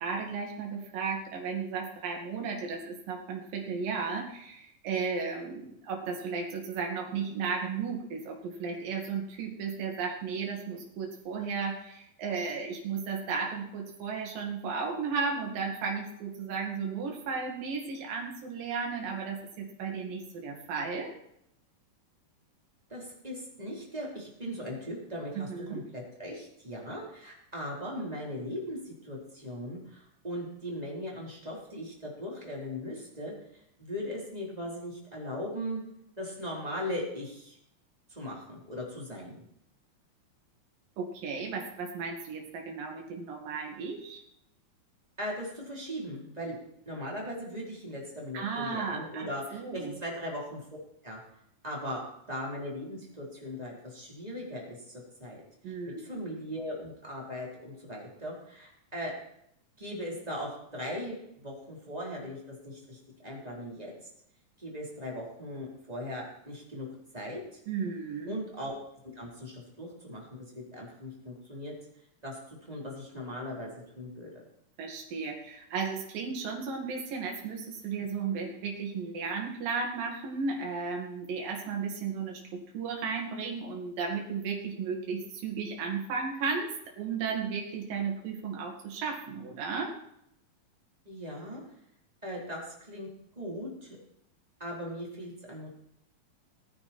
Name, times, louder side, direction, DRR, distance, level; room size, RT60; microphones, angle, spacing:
voice 1, 0.0-21.1 25.4-25.8 41.0-44.2 48.3-49.9 55.6-56.1 67.7-68.3 74.8-86.7 87.0-89.9, right 5 dB, 70° right, 0 dB, 4.0 m, -34 dB
voice 2, 22.9-33.3 33.8-35.8 36.2-37.6 38.1-39.4 45.2-46.6 46.9-50.6 51.0-51.2 51.6-52.0 52.3-55.4 55.7-59.1 59.8-63.9 64.6-66.9 67.1-67.6 68.3-68.7 69.0-71.7 72.2-74.4 91.0-91.6 92.2-93.1 93.4-94.0 94.6-95.7, equal, 10° right, -3 dB, 3.9 m, -39 dB
20.0 x 9.9 x 4.5 m, 0.76 s
omnidirectional pair, 4.1 m